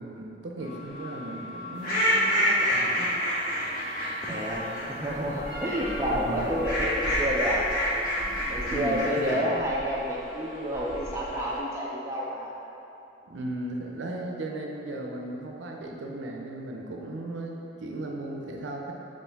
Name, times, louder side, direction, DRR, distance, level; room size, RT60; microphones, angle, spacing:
voice 1, 0.0-3.1 4.2-4.5 6.1-6.6 8.4-9.4 13.2-18.9, right 1 dB, 70° right, 0 dB, 0.5 m, -36 dB
sound 1, 0.6-11.6, left 1 dB, ahead, 1.3 m, -39 dB
sound 2, 1.8-5.1 6.4-9.3, equal, 50° left, 1.2 m, -27 dB
voice 2, 4.2-7.6 8.2-12.5, equal, 15° right, -5 dB, 0.4 m, -30 dB
4.4 x 3.1 x 3.4 m, 2.9 s
head